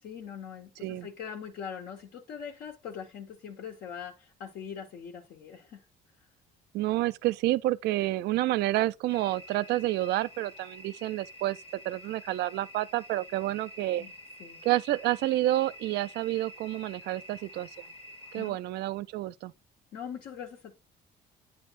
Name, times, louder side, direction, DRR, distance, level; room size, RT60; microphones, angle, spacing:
voice 1, 0.0-5.8 14.0-14.1 14.4-14.6 18.3-18.6 19.9-20.8, left 7 dB, 70° left, 1.5 m, -42 dB
voice 2, 6.7-11.6 11.8-14.1 14.6-17.7 18.3-19.5, right 16 dB, 75° right, 0.5 m, -29 dB
sound 1, 9.1-18.5, equal, 35° left, 1.2 m, -49 dB
9.2 x 3.4 x 4.1 m
cardioid pair, 110°, 17 cm